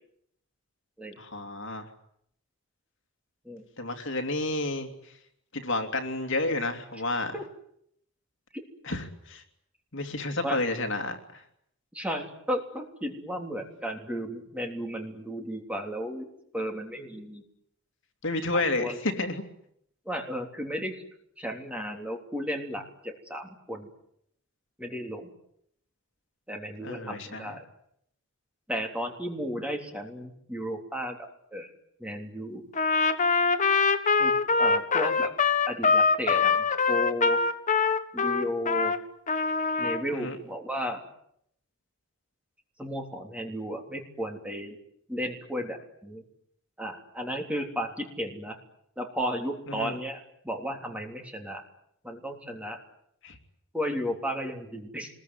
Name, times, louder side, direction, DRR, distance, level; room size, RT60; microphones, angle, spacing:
voice 1, 1.2-1.9 3.8-4.9 5.5-7.3 8.8-9.4 9.9-11.4 18.2-19.4 26.8-27.5 40.1-40.4 49.7-49.9 53.2-53.4, left 2 dB, 60° left, 5 dB, 3.0 m, -30 dB
voice 2, 11.9-16.2 16.5-17.4 18.5-19.0 20.0-20.9 21.4-23.9 24.8-25.3 26.5-27.6 28.7-31.2 31.5-31.7 32.0-32.6 34.2-35.3 35.7-36.6 36.9-37.4 38.1-38.9 39.8-41.0 42.8-44.8 45.1-46.2 46.8-48.6 49.0-51.6 52.0-52.8 53.7-55.1, equal, 5° right, 3 dB, 3.4 m, -34 dB
Trumpet, 32.7-39.0 39.3-40.0, left 4 dB, 35° left, 1.4 m, -24 dB
25.0 x 21.5 x 9.6 m, 0.73 s
head